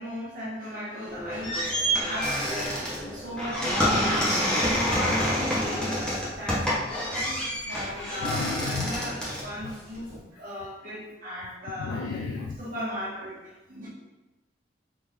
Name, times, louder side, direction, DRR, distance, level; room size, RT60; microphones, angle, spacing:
voice 1, 0.0-12.0 12.6-13.9, equal, 50° right, -6 dB, 1.1 m, -36 dB
sound 1, 1.1-10.2, equal, 5° left, 0.7 m, -28 dB
voice 2, 8.2-8.9 11.8-12.6, left 4 dB, 85° left, 1 dB, 0.3 m, -32 dB
3.5 x 2.5 x 3.1 m, 1.1 s
head